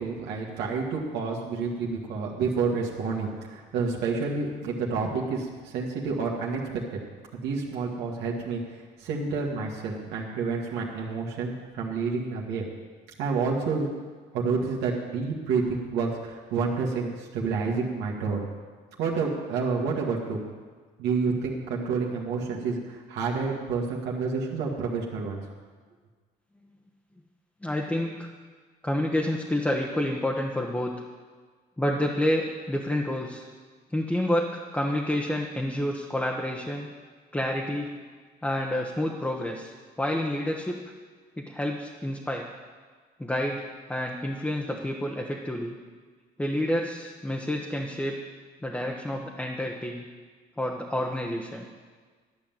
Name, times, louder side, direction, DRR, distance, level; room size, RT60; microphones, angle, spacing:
voice 1, 0.0-7.0 7.3-12.6 13.2-13.9 14.3-18.5 19.0-20.4 21.0-25.4, right 4 dB, 90° right, -2 dB, 1.8 m, -29 dB
voice 2, 27.6-28.3 28.8-30.9 31.8-33.5 33.9-36.9 37.3-37.9 38.4-40.8 41.4-42.5 43.2-45.7 46.4-48.2 48.6-50.0 50.6-51.6, left 1 dB, 10° left, 0 dB, 1.0 m, -29 dB
12.5 x 5.7 x 8.9 m, 1.5 s
cardioid pair, 110°, 17 cm